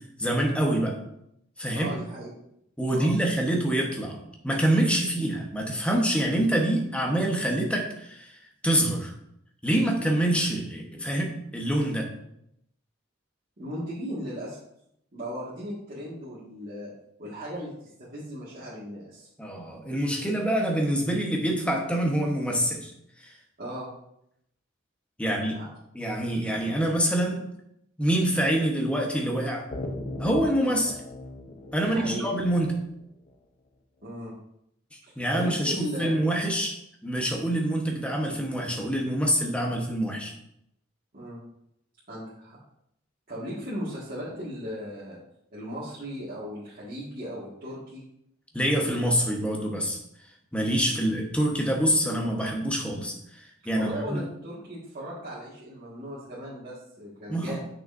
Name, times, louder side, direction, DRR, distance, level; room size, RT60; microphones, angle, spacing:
voice 1, 0.2-1.0 1.6-1.9 2.8-8.4 8.6-9.1 9.6-12.1 19.4-22.9 23.2-23.3 25.2-25.6 25.9-27.4 28.0-29.7 30.2-31.0 31.7-32.7 35.2-40.3 48.5-50.0 50.5-54.2 57.3-57.6, right 1 dB, 5° left, 1 dB, 1.1 m, -26 dB
voice 2, 1.7-2.3 2.9-3.1 5.0-5.1 13.6-14.6 15.1-16.9 17.2-17.7 18.0-19.3 23.6-23.9 25.2-25.7 31.8-32.3 34.0-34.4 35.3-36.2 41.1-41.4 42.1-42.6 43.3-45.2 45.5-48.0 50.9-51.1 53.7-57.6, equal, 45° right, -9 dB, 1.9 m, -37 dB
sound 1, 29.7-33.3, left 2 dB, 40° left, 0.7 m, -38 dB
8.0 x 6.3 x 2.6 m, 0.77 s
head